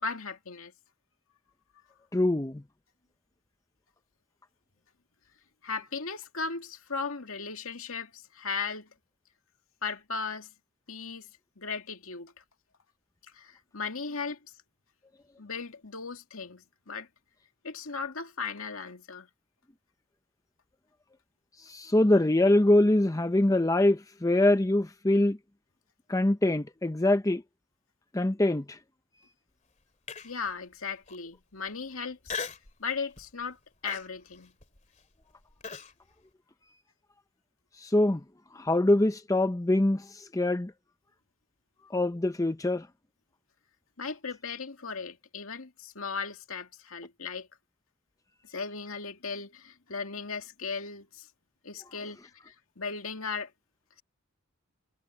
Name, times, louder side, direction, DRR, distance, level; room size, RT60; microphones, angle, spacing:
voice 1, 0.0-0.7 5.6-8.9 9.8-10.5 10.9-11.3 11.6-12.4 13.3-14.4 15.4-17.1 17.6-19.3 30.2-32.2 32.8-34.5 44.0-47.5 48.4-51.3 51.6-52.2 52.5-53.5, left 5 dB, 75° left, 2.3 m, -37 dB
voice 2, 2.1-2.6 21.6-25.4 26.1-27.4 28.1-28.8 37.8-38.2 38.5-40.7 41.9-42.9, left 1 dB, 15° left, 0.6 m, -24 dB
Human voice, 30.1-30.5 31.1-31.2 32.3-32.7 33.2-33.4 33.9-35.9, left 5 dB, 35° left, 2.5 m, -38 dB
head